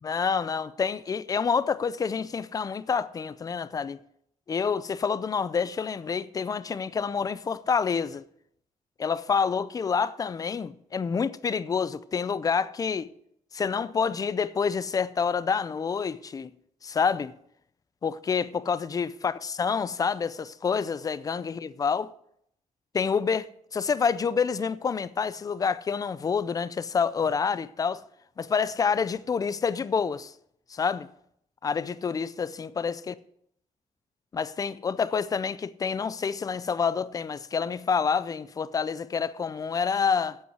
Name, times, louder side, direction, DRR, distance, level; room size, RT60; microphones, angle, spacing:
voice 1, 0.0-4.0 4.5-8.2 9.0-13.1 13.5-16.5 16.8-17.3 18.0-22.1 22.9-28.0 28.4-30.3 30.7-31.1 31.6-33.1 34.3-40.4, left 6 dB, 25° left, 0.4 m, -28 dB
8.2 x 7.7 x 7.9 m
wide cardioid pair, 165°, 14 cm